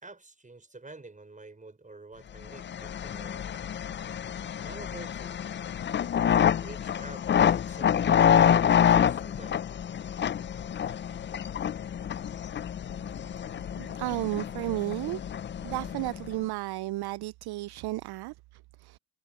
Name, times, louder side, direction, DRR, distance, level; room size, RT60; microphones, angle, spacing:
voice 1, 0.0-3.5 4.6-5.4 6.6-9.6, right 3 dB, 15° right, 5.5 m, -48 dB
sound 1, 2.5-16.3, left 8 dB, 25° left, 0.5 m, -27 dB
voice 2, 13.2-13.5 13.8-15.2 15.6-19.0, right 19 dB, 55° right, 0.6 m, -33 dB
supercardioid pair, 80°, 47 cm